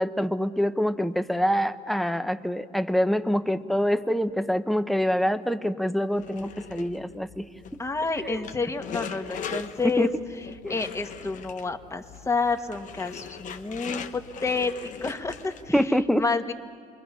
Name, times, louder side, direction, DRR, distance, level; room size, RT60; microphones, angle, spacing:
voice 1, 0.0-7.5 8.2-8.4 9.8-10.1 10.6-10.8 15.7-16.2, equal, ahead, 11 dB, 0.8 m, -25 dB
sound 1, 6.1-15.8, left 7 dB, 55° left, 1.0 m, -40 dB
voice 2, 7.8-10.1 10.7-15.8 16.2-16.5, left 4 dB, 20° left, 6 dB, 1.5 m, -29 dB
27.5 x 22.0 x 5.6 m, 2.1 s
supercardioid pair, 85°, 15 cm